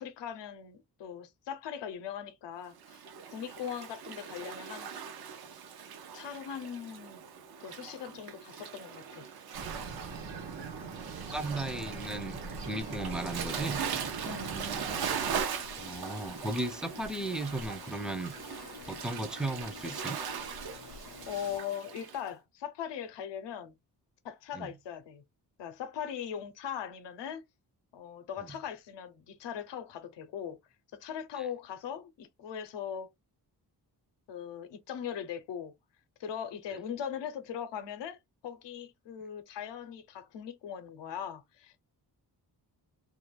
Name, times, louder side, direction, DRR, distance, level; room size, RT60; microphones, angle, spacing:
voice 1, 0.0-3.0 3.3-5.0 6.1-7.2 7.6-9.3 14.2-14.6 21.3-23.8 24.2-25.2 25.6-27.4 27.9-30.6 30.9-33.1 34.3-35.7 36.2-41.8, left 8 dB, 90° left, 0.7 m, -40 dB
Waves surf, 2.8-22.2, right 7 dB, 60° right, 0.6 m, -40 dB
Bird, 9.5-15.4, right 4 dB, 80° right, 1.0 m, -41 dB
voice 2, 11.2-12.4 12.7-13.8 15.8-18.3 18.9-20.2 24.5-24.7 31.4-31.5 36.7-36.8, right 2 dB, ahead, 0.4 m, -35 dB
sound 1, 12.8-21.6, left 5 dB, 50° left, 0.5 m, -49 dB
2.4 x 2.2 x 3.1 m
cardioid pair, 95°, 41 cm